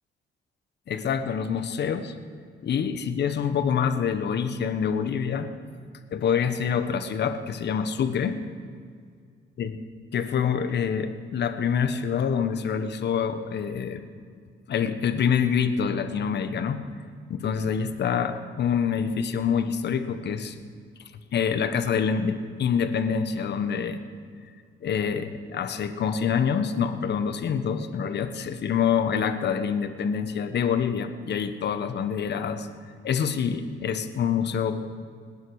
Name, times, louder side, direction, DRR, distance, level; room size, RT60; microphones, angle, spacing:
voice 1, 0.9-2.1 2.6-5.5 6.1-8.3 9.6-9.8 10.1-14.0 14.7-16.8 17.3-20.5 21.3-24.0 24.8-32.7 33.0-34.8, left 7 dB, 60° left, 9 dB, 1.2 m, -26 dB
25.0 x 10.0 x 4.9 m, 2.1 s
cardioid pair, 90°, 20 cm